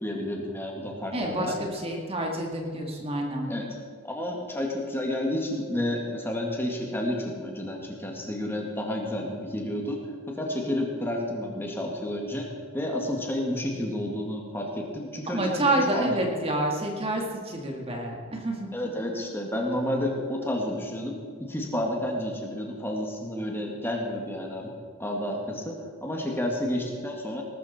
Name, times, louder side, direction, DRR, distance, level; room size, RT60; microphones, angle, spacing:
voice 1, 0.0-1.6 3.5-3.7 4.0-10.0 10.3-12.5 12.7-16.2 18.7-21.2 21.5-24.7 25.0-25.7 26.0-27.4, left 1 dB, 10° left, 0 dB, 2.1 m, -30 dB
voice 2, 1.1-3.5 15.3-18.7, right 1 dB, 25° right, 1 dB, 2.1 m, -28 dB
19.5 x 12.5 x 4.3 m, 2.2 s
head